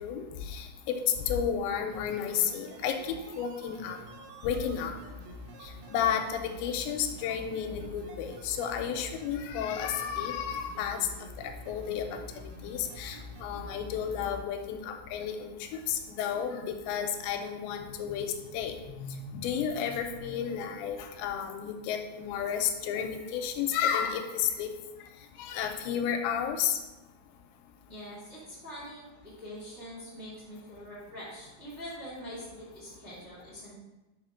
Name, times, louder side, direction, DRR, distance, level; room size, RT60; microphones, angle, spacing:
voice 1, 0.0-4.0 4.4-4.9 5.6-11.1 11.4-12.2 12.6-24.7 25.4-26.8, left 8 dB, 85° left, 5 dB, 2.8 m, -32 dB
sound 1, 1.9-14.4 14.7-14.8, left 1 dB, 85° right, 3.2 m, -46 dB
voice 2, 27.9-33.7, equal, 25° right, -8 dB, 1.4 m, -44 dB
6.0 x 5.0 x 5.5 m, 1.1 s
omnidirectional pair, 5.3 m